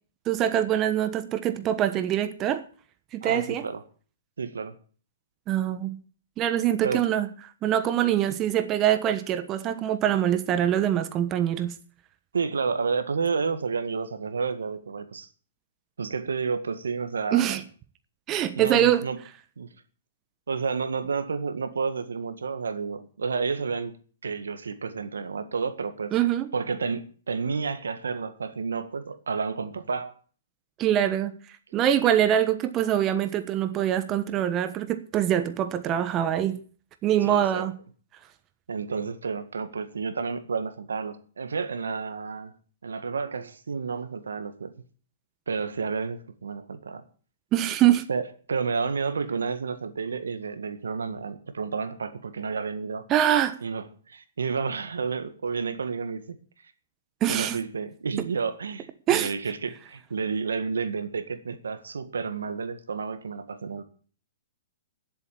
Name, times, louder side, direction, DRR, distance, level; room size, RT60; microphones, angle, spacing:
voice 1, 0.3-2.6 3.1-3.7 5.5-6.0 6.4-7.3 7.6-11.8 17.3-17.6 18.3-19.1 26.1-26.5 30.8-31.4 31.7-36.6 37.0-37.7 47.5-48.0 53.1-53.6 57.2-57.6 59.1-59.3, right 11 dB, 25° right, 1.1 m, -24 dB
voice 2, 3.2-3.8 4.4-4.7 6.8-7.1 12.3-15.3 16.0-17.6 18.5-19.2 19.6-19.7 20.5-24.0 24.2-26.1 26.5-30.1 37.2-37.6 38.7-42.5 42.8-44.7 45.5-47.0 48.1-53.0 53.6-56.4 57.3-63.8, right 5 dB, 85° right, 1.7 m, -30 dB
10.5 x 8.2 x 8.6 m
hypercardioid pair, 135°, 0 cm